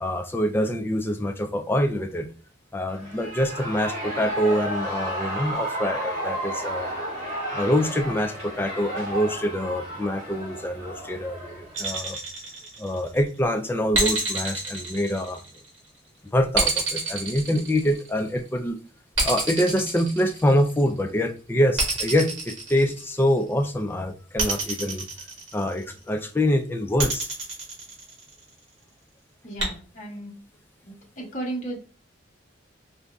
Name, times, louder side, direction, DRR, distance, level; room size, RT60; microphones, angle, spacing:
voice 1, 0.0-2.3 2.7-6.9 7.5-12.2 12.8-15.4 16.3-18.8 19.2-25.1 25.5-27.3, equal, 10° left, 0.3 m, -25 dB
Shout / Cheering, 2.9-11.8, right 1 dB, 35° right, 1.5 m, -32 dB
sound 1, 11.7-13.2 13.9-15.8 16.5-18.3 19.1-20.9 21.8-23.4 24.4-25.9 27.0-28.5 29.6-29.7, right 3 dB, 70° right, 1.8 m, -28 dB
voice 2, 29.4-30.4 30.8-31.8, right 2 dB, 35° left, 0.9 m, -34 dB
4.8 x 2.6 x 2.2 m
head